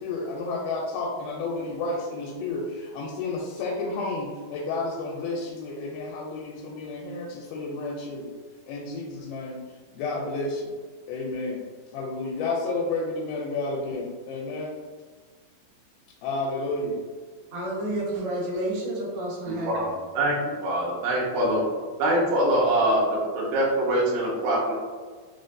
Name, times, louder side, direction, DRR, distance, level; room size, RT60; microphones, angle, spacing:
voice 1, 0.0-8.3 8.7-9.6 9.9-10.7 11.1-11.6 11.9-14.7 16.2-17.0, left 3 dB, 85° left, -2 dB, 2.3 m, -31 dB
voice 2, 17.5-19.9, right 1 dB, 60° right, -7 dB, 2.0 m, -30 dB
voice 3, 19.5-20.3 20.6-21.6 22.0-24.7, right 1 dB, 80° right, -5 dB, 2.2 m, -24 dB
5.6 x 2.1 x 2.5 m, 1.5 s
omnidirectional pair, 4.3 m